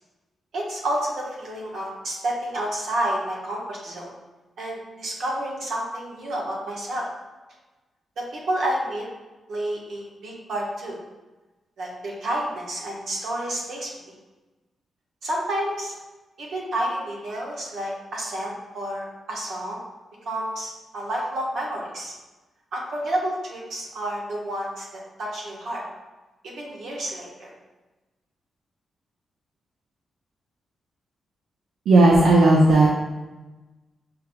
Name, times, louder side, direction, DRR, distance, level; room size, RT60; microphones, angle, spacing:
voice 1, 0.5-4.1 4.6-7.0 8.2-9.0 9.5-11.0 11.8-14.1 15.2-15.9 16.4-19.8 20.2-22.1 22.7-24.8 25.2-25.8 26.4-27.5, right 1 dB, 75° right, -3 dB, 1.2 m, -30 dB
voice 2, 31.9-32.9, right 2 dB, 90° right, -2 dB, 0.5 m, -14 dB
5.7 x 3.4 x 2.3 m, 1.1 s
wide cardioid pair, 130°, 0 cm